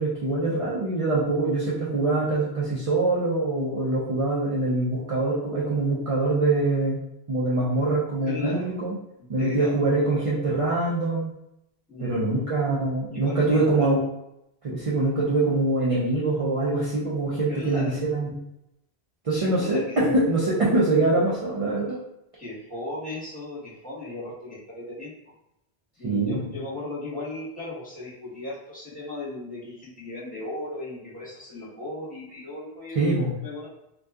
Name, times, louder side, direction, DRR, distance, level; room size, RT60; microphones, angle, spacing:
voice 1, 0.0-7.0 7.3-8.9 9.3-11.3 12.0-14.0 14.6-18.4 19.2-22.0 26.0-26.5 32.9-33.4, right 2 dB, 40° right, -6 dB, 0.6 m, -24 dB
voice 2, 8.2-8.7 9.2-9.8 11.9-12.8 13.1-13.9 17.5-18.0 19.3-20.0 22.4-25.1 26.0-33.1 33.4-33.7, left 2 dB, 10° left, -9 dB, 1.1 m, -37 dB
2.7 x 2.3 x 3.4 m, 0.83 s
omnidirectional pair, 1.1 m